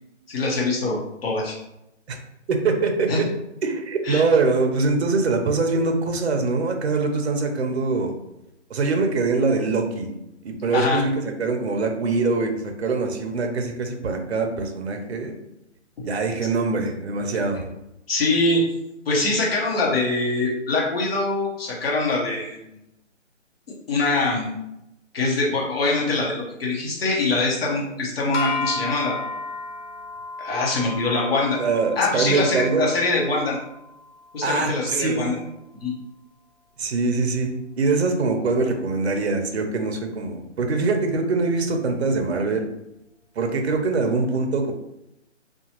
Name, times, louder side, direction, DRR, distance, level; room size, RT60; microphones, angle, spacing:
voice 1, 0.3-1.5 3.1-3.2 4.0-4.2 10.7-11.0 18.1-18.6 19.1-22.6 23.9-24.5 25.1-29.2 30.4-31.6 32.0-33.6 34.3-35.4 35.8-35.9, left 2 dB, 50° left, -3 dB, 1.1 m, -23 dB
voice 2, 2.5-3.3 3.6-8.1 8.7-10.1 10.4-15.3 16.0-17.7 31.6-32.8 34.4-35.2 36.8-42.7 43.4-44.7, right 3 dB, 60° right, 4 dB, 0.6 m, -23 dB
sound 1, 28.3-34.7, left 3 dB, 75° left, 0.7 m, -33 dB
2.7 x 2.3 x 2.8 m, 0.85 s
hypercardioid pair, 160°, 37 cm